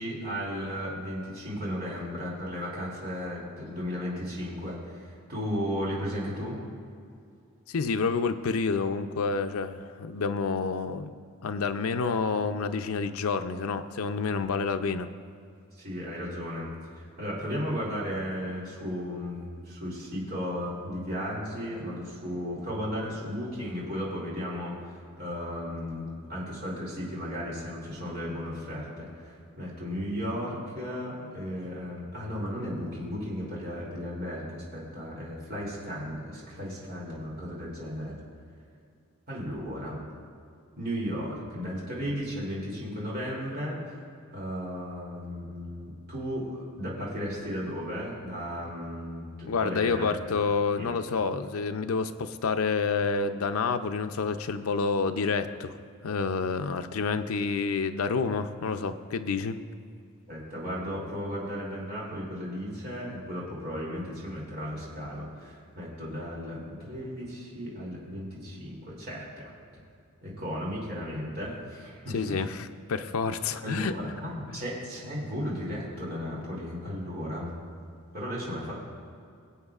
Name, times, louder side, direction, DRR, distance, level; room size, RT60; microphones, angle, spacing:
voice 1, 0.0-6.6 15.8-38.2 39.3-40.1 40.8-43.9 44.3-50.2 50.8-50.9 60.3-69.5 70.2-72.5 73.6-77.6 78.1-78.7, equal, 45° right, -5 dB, 2.8 m, -35 dB
voice 2, 7.7-11.1 11.4-15.1 49.5-55.8 56.0-59.6 72.1-73.9, left 4 dB, 85° left, 8 dB, 0.5 m, -28 dB
22.5 x 8.2 x 2.4 m, 2.4 s
head